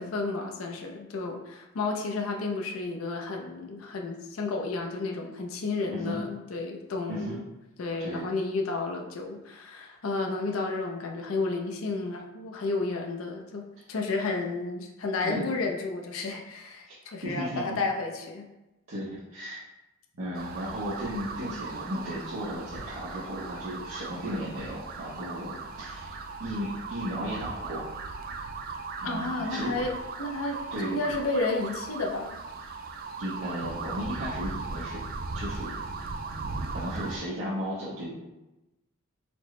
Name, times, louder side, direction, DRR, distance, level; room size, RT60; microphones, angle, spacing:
voice 1, 0.0-7.4 7.8-18.5 29.0-29.9 30.2-32.4, left 3 dB, 75° left, 2 dB, 0.5 m, -32 dB
voice 2, 5.9-6.2 7.1-7.4 8.0-8.3 15.2-15.5 17.2-17.8 18.9-19.6 20.2-26.1 26.4-27.9 29.0-29.7 30.7-31.0 33.2-35.0 35.3-35.8 36.7-38.1, equal, 85° right, -9 dB, 0.8 m, -35 dB
sound 1, 20.4-37.2, right 4 dB, 45° right, 0.3 m, -38 dB
4.3 x 2.0 x 3.1 m, 0.98 s
head